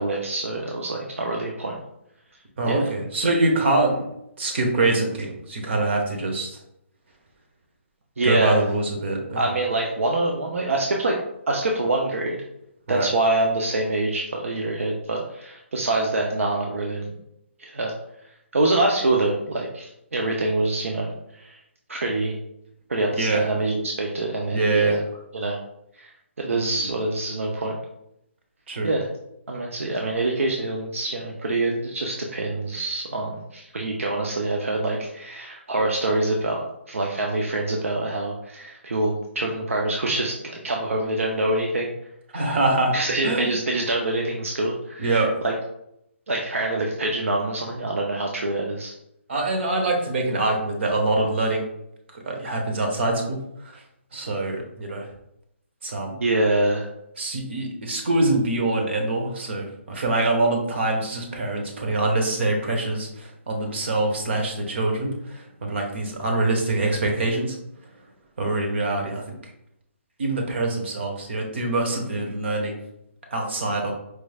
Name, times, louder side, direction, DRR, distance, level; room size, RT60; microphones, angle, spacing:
voice 1, 0.0-1.8 2.7-2.9 8.2-8.7 9.4-11.2 11.5-12.4 12.9-17.1 17.6-17.9 18.5-21.6 21.9-22.4 22.9-25.0 25.3-25.6 26.0-26.1 26.4-27.8 28.8-29.1 29.5-36.6 36.9-41.9 42.9-45.5 46.3-48.9 56.2-56.9, right 2 dB, 85° right, 0 dB, 0.6 m, -25 dB
voice 2, 2.6-4.0 4.4-6.6 8.2-9.5 12.9-13.1 23.2-23.5 24.5-25.0 26.5-26.8 28.7-28.9 42.3-42.9 43.2-43.5 45.0-45.4 49.3-51.7 52.1-53.8 54.1-55.1 55.8-56.1 57.2-67.6 68.4-69.4 70.2-72.8 73.3-73.9, right 2 dB, 60° right, 2 dB, 1.0 m, -24 dB
4.6 x 3.2 x 2.3 m, 0.80 s
hypercardioid pair, 145°, 7 cm